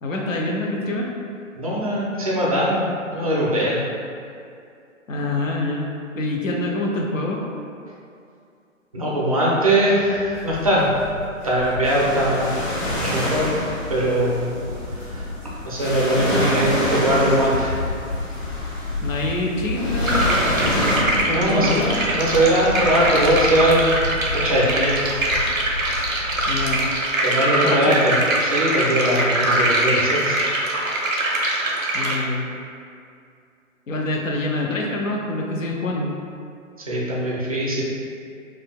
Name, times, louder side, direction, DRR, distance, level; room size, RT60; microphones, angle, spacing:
voice 1, 0.0-1.1 5.1-7.4 16.4-16.5 19.0-20.5 20.7-22.0 26.5-26.9 27.6-28.1 31.9-32.5 33.9-36.1, left 2 dB, 75° left, -1 dB, 0.6 m, -26 dB
voice 2, 1.6-3.8 8.9-10.9 11.4-12.6 12.9-13.5 13.9-14.6 15.0-15.2 15.6-17.8 21.3-21.7 22.1-23.9 24.3-25.1 27.2-30.4 36.8-37.8, right 1 dB, 30° right, -6 dB, 0.3 m, -21 dB
sound 1, 10.3-26.9, left 3 dB, 60° left, 1.3 m, -31 dB
sound 2, 11.8-21.0, equal, 25° left, 0.8 m, -27 dB
sound 3, 20.1-32.1, right 1 dB, 90° right, 0.7 m, -23 dB
3.7 x 2.2 x 2.3 m, 2.4 s
figure-of-eight pair, 130°, 40 cm